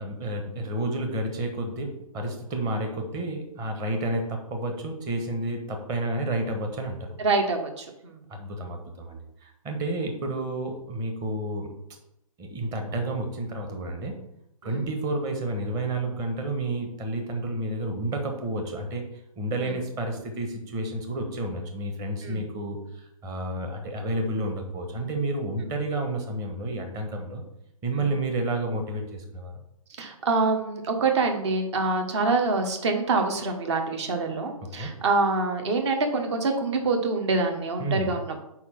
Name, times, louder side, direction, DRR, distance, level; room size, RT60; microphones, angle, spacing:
voice 1, 0.0-7.1 8.3-11.7 12.4-14.2 14.6-19.0 19.4-27.4 27.8-29.5 34.6-34.9 37.8-38.1, right 1 dB, 20° right, 4 dB, 1.1 m, -30 dB
voice 2, 7.2-8.2 14.6-14.7 22.2-22.4 30.0-38.4, right 3 dB, 50° right, 4 dB, 1.3 m, -25 dB
4.7 x 4.3 x 5.9 m, 0.80 s
figure-of-eight pair, 130°, 19 cm